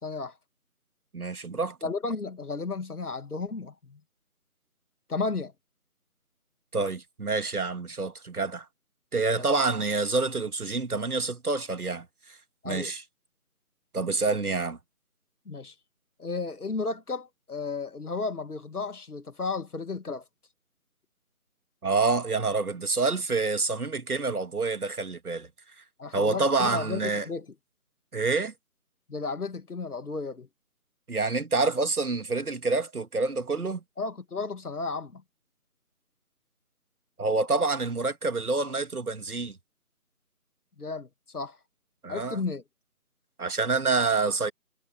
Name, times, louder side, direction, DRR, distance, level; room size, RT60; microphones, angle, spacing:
voice 1, 0.0-0.4 1.8-4.0 5.1-5.5 9.4-9.5 12.6-12.9 15.5-15.8 16.2-20.3 26.0-27.5 29.1-30.5 34.0-35.2 40.8-41.6 42.1-42.6, left 4 dB, 80° left, 2.0 m, -33 dB
voice 2, 1.1-1.8 6.7-8.7 9.1-12.1 12.6-13.0 13.9-14.8 21.8-25.5 26.1-27.3 28.1-28.5 31.1-33.8 37.2-39.6 42.0-42.4 43.4-44.5, right 3 dB, 80° right, 2.1 m, -27 dB
figure-of-eight pair, 180°, 44 cm